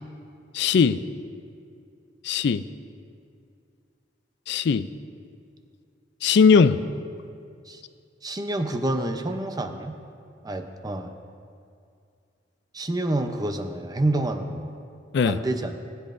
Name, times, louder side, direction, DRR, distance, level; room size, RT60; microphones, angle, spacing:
voice 1, 0.5-1.0 2.2-2.6 4.5-4.9 6.2-6.8 15.1-15.4, left 5 dB, 65° left, 13 dB, 0.4 m, -19 dB
voice 2, 8.2-10.0 10.4-11.1 12.7-14.7 15.2-15.8, right 1 dB, 20° right, 6 dB, 0.6 m, -28 dB
19.0 x 10.5 x 2.6 m, 2.4 s
head